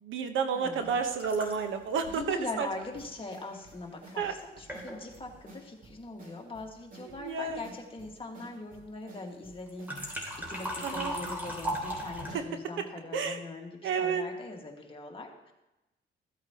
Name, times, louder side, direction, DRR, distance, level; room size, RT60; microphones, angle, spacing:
voice 1, 0.0-2.7 4.2-4.3 7.2-7.6 10.8-11.1 12.3-12.4 13.1-13.4 13.8-14.2, right 6 dB, 80° right, 7 dB, 1.1 m, -30 dB
voice 2, 0.5-1.0 2.1-10.2 10.5-15.5, left 3 dB, 25° left, 1 dB, 1.9 m, -41 dB
sound 1, 0.8-3.6 4.3-4.4 4.7-5.2 9.7-12.3, equal, 10° right, 2.9 m, -38 dB
sound 2, 2.9-12.5, right 2 dB, 45° right, 3.0 m, -52 dB
14.5 x 8.4 x 3.0 m, 0.98 s
cardioid pair, 90°, 20 cm